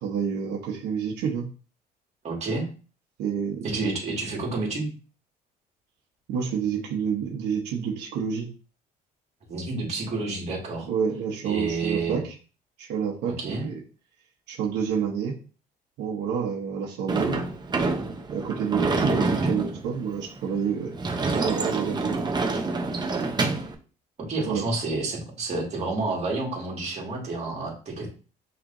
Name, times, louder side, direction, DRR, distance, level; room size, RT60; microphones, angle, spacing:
voice 1, 0.0-1.4 3.2-4.0 6.3-8.5 10.8-12.3 12.8-13.7 14.5-15.3 16.0-17.4 18.3-20.9 21.3-22.2 24.4-24.6, right 7 dB, 85° right, -2 dB, 1.1 m, -28 dB
voice 2, 2.2-2.7 3.6-4.9 9.5-10.9 11.4-12.2 13.3-13.7 24.2-28.1, right 3 dB, 40° right, -1 dB, 2.2 m, -29 dB
Sliding door / Slam, 17.1-23.7, right 3 dB, 25° right, 0.8 m, -27 dB
5.9 x 3.3 x 2.7 m, 0.37 s
cardioid pair, 110°, 17 cm